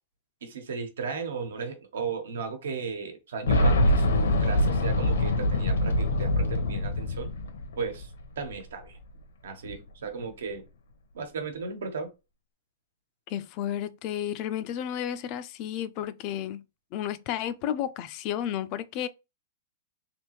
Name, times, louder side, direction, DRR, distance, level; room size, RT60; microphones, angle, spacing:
voice 1, 0.4-7.3 7.8-8.1 8.4-9.0 9.4-10.6 11.1-12.1, right 5 dB, 85° right, 1.2 m, -35 dB
Boom, 3.5-8.2 8.5-8.6 9.7-9.8, left 1 dB, 90° left, 1.0 m, -24 dB
voice 2, 13.3-16.6 16.9-19.1, left 10 dB, 30° left, 0.3 m, -32 dB
3.3 x 3.0 x 3.1 m
supercardioid pair, 165°, 0 cm